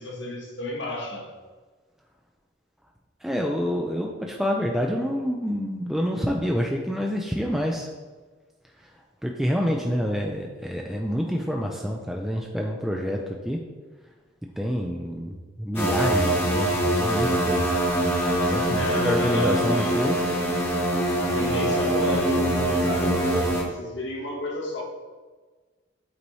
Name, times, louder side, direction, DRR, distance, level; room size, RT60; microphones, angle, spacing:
voice 1, 0.0-1.3 18.7-20.2 21.2-24.8, left 1 dB, 75° left, -1 dB, 1.3 m, -32 dB
voice 2, 3.2-7.9 8.8-13.6 14.6-17.8 18.5-20.2, equal, ahead, 0 dB, 0.4 m, -27 dB
sound 1, 15.7-23.6, right 1 dB, 15° left, 1.1 m, -23 dB
8.4 x 4.0 x 3.1 m, 1.3 s
head